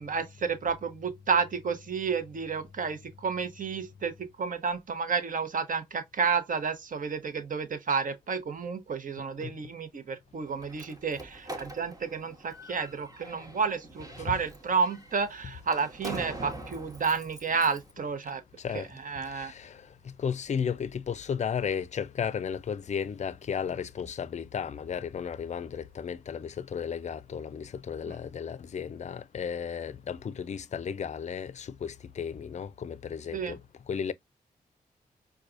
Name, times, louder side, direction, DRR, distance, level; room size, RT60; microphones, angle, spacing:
voice 1, 0.0-18.4 18.7-19.5 28.1-28.2 33.3-33.6, right 5 dB, 55° right, 0.9 m, -31 dB
Slam, 10.4-17.9, right 2 dB, 20° right, 1.0 m, -44 dB
voice 2, 18.6-18.9 19.3-19.8 20.2-33.6 33.9-34.1, left 7 dB, 45° left, 0.4 m, -34 dB
4.6 x 2.3 x 2.4 m
supercardioid pair, 40°, 17 cm